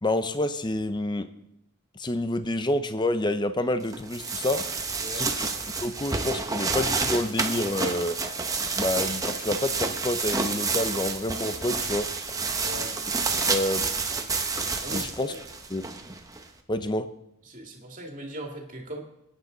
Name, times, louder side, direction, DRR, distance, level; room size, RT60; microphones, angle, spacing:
voice 1, 0.0-1.3 2.0-4.6 5.1-5.5 5.8-8.2 8.8-12.1 13.5-13.8 14.9-15.3 15.7-15.8 16.7-17.1, left 1 dB, 20° left, 10 dB, 0.7 m, -28 dB
sound 1, 3.9-16.4, right 4 dB, 15° right, 0.9 m, -29 dB
voice 2, 5.0-5.4 12.6-12.9 14.8-15.4 17.4-19.0, right 1 dB, 35° right, 1 dB, 2.3 m, -39 dB
20.5 x 9.5 x 4.0 m, 0.83 s
head